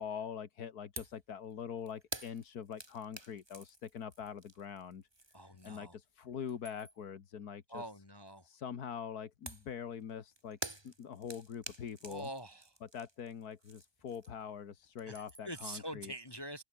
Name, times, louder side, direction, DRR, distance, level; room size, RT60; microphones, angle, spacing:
voice 1, 0.0-5.1 5.4-7.9 8.4-10.6 10.8-12.3 12.8-16.1, left 7 dB, 80° left, 1.9 m, -44 dB
sound 1, 1.0-1.2 1.5-6.0 6.3-7.1 9.5-14.6 14.8-15.6, right 2 dB, 15° right, 2.3 m, -49 dB
voice 2, 5.3-5.9 7.7-8.5 12.0-12.7 15.1-16.6, right 1 dB, 20° left, 0.9 m, -45 dB
omnidirectional pair, 1.6 m